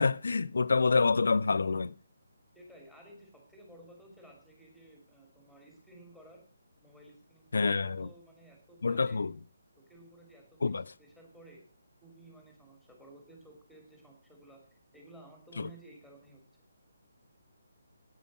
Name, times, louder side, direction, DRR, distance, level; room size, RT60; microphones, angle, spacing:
voice 1, 0.0-1.9 7.5-8.1 8.8-9.3 10.6-10.8, left 4 dB, 55° left, 0.5 m, -27 dB
voice 2, 2.5-6.4 6.8-9.3 9.9-11.6 12.0-16.4, right 1 dB, ahead, 2.6 m, -55 dB
10.0 x 9.1 x 6.1 m
figure-of-eight pair, 145°, 0 cm